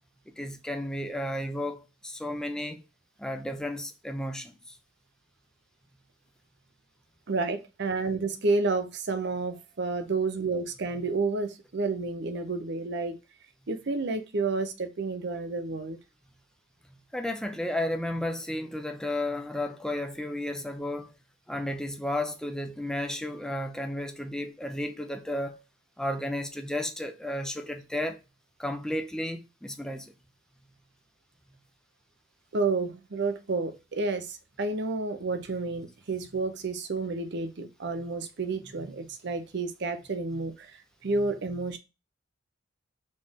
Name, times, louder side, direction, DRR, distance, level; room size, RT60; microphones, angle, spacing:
voice 1, 0.4-2.8 3.2-4.6 17.1-21.1 21.5-25.6 26.0-28.2 28.6-30.1 38.0-38.1 38.8-39.0 40.3-40.4 41.2-41.3, left 1 dB, 5° left, 0.5 m, -33 dB
voice 2, 7.3-13.2 13.7-16.0 32.5-40.7 41.0-41.8, right 3 dB, 60° right, 0.6 m, -30 dB
4.2 x 3.2 x 3.5 m
head